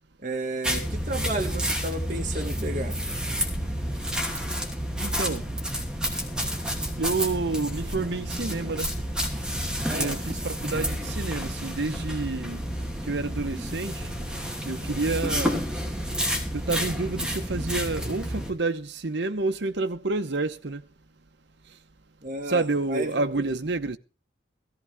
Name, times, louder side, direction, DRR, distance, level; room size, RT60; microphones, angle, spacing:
voice 1, 0.2-3.0 9.9-10.2 15.5-15.6 22.2-23.5, right 2 dB, 45° right, 1.9 m, -33 dB
sound 1, 0.6-18.5, equal, 5° right, 2.7 m, -30 dB
voice 2, 5.0-5.5 7.0-8.9 9.9-12.6 13.1-14.1 14.6-15.6 16.5-20.8 22.5-24.0, right 3 dB, 70° right, 0.9 m, -29 dB
16.5 x 15.0 x 3.6 m
head